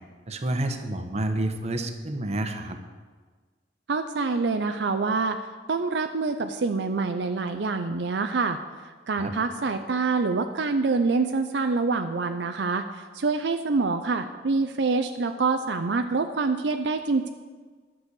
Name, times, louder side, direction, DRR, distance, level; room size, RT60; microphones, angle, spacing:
voice 1, 0.3-2.8 9.2-9.3, right 1 dB, 40° right, 6 dB, 1.0 m, -29 dB
voice 2, 3.9-5.4 5.7-8.6 9.1-17.3, right 4 dB, 70° right, 7 dB, 0.5 m, -26 dB
10.5 x 6.2 x 8.3 m, 1.4 s
head